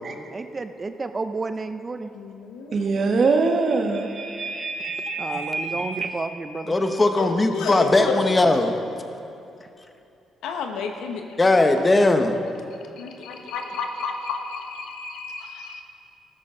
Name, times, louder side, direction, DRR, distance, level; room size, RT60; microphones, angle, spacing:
voice 1, 0.3-2.1 5.2-6.7, right 3 dB, 30° right, 9 dB, 0.5 m, -31 dB
voice 2, 2.1-3.3 7.2-8.4 10.4-11.2 13.0-15.8, left 5 dB, 90° left, 4 dB, 1.2 m, -31 dB
voice 3, 2.7-6.1, right 3 dB, 50° right, 4 dB, 1.2 m, -24 dB
voice 4, 6.7-8.7 11.4-12.4, left 2 dB, 25° left, 6 dB, 1.0 m, -19 dB
14.5 x 12.5 x 3.8 m, 2.8 s
cardioid pair, 90°, 0 cm